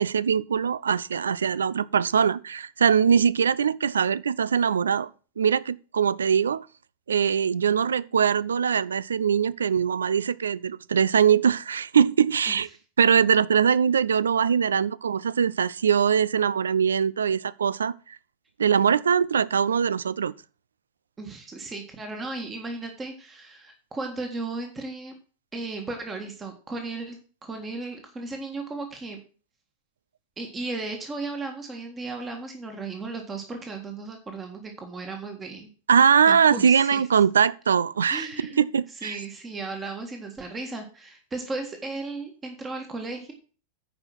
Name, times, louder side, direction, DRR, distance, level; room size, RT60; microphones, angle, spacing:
voice 1, 0.0-5.1 5.4-6.7 7.1-12.7 13.0-17.9 18.6-20.3 35.9-38.3 38.6-39.2, right 7 dB, 70° right, 0.3 m, -22 dB
voice 2, 21.2-25.1 25.5-29.2 30.4-35.7 36.2-37.0 38.1-38.6 39.0-43.3, right 3 dB, 20° right, 1.7 m, -35 dB
9.7 x 5.1 x 6.1 m
figure-of-eight pair, 90°, 0 cm